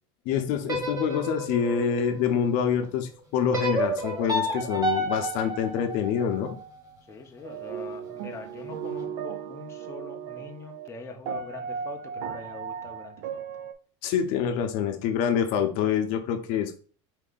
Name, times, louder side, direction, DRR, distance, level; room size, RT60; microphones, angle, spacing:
voice 1, 0.3-6.6 14.0-16.8, left 8 dB, 60° left, 6 dB, 0.7 m, -26 dB
sound 1, 0.6-2.8 3.5-6.7, equal, 20° right, 1.2 m, -30 dB
voice 2, 7.1-13.4, left 3 dB, 15° left, 2 dB, 0.6 m, -43 dB
sound 2, 7.4-10.9 11.3-13.7, right 7 dB, 75° right, 0.5 m, -36 dB
4.5 x 2.7 x 3.9 m, 0.42 s
supercardioid pair, 145°, 16 cm